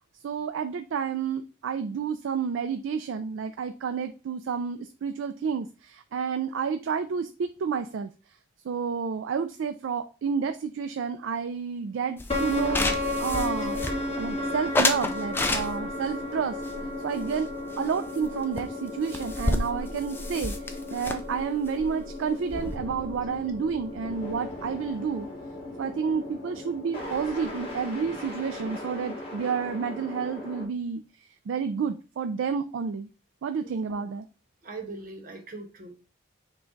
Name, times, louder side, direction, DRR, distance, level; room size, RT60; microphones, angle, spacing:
voice 1, 0.2-8.1 8.6-13.8 14.2-16.6 17.0-17.5 17.8-25.3 25.8-33.1 33.4-34.3, right 6 dB, 70° right, 0.3 m, -30 dB
sound 1, 12.2-14.3 14.7-16.1 16.6-17.9 18.2-18.3 18.6-18.7 18.9-22.7, left 2 dB, 10° left, 0.3 m, -30 dB
sound 2, 12.3-30.6, left 2 dB, 30° left, 1.1 m, -35 dB
voice 2, 34.6-35.9, right 3 dB, 45° right, 0.8 m, -40 dB
6.1 x 2.3 x 3.8 m
head